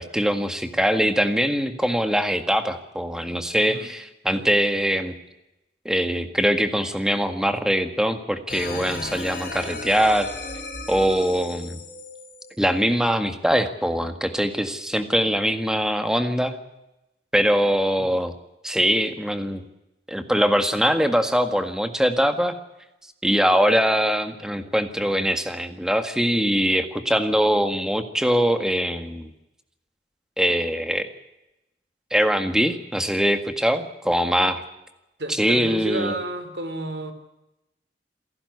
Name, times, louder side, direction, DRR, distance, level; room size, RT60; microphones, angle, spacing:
voice 1, 0.0-5.1 5.9-10.3 10.9-11.8 12.6-16.6 17.3-18.3 18.6-19.6 20.1-22.5 23.2-29.3 30.4-31.1 32.1-34.6 35.3-36.1, equal, 5° right, 8 dB, 1.8 m, -22 dB
sound 1, 8.5-13.4, left 2 dB, 50° left, 6.9 m, -36 dB
voice 2, 35.2-37.1, right 2 dB, 70° right, 9 dB, 3.5 m, -31 dB
27.5 x 12.0 x 9.6 m, 0.93 s
head